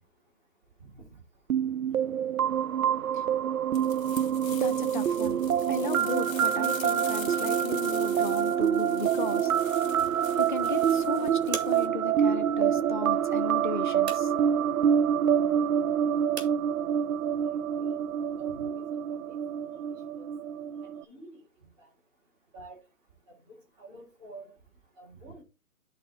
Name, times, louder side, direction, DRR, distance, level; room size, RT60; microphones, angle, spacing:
sound 1, 1.5-21.0, right 9 dB, 75° right, 0.6 m, -26 dB
voice 1, 2.9-3.2 4.5-5.4 5.7-9.5 10.4-14.5, left 4 dB, 35° left, 0.4 m, -36 dB
sound 2, 3.7-11.9, left 5 dB, 65° left, 1.7 m, -44 dB
sound 3, 9.4-18.6, right 4 dB, 50° right, 2.2 m, -46 dB
voice 2, 17.5-18.0 18.4-19.0 19.3-19.6 20.1-20.3 21.0-21.4 21.8-21.9 22.5-22.8 23.5-24.5 25.0-25.4, right 2 dB, 15° right, 3.7 m, -48 dB
10.5 x 4.0 x 4.0 m
hypercardioid pair, 165°, 43 cm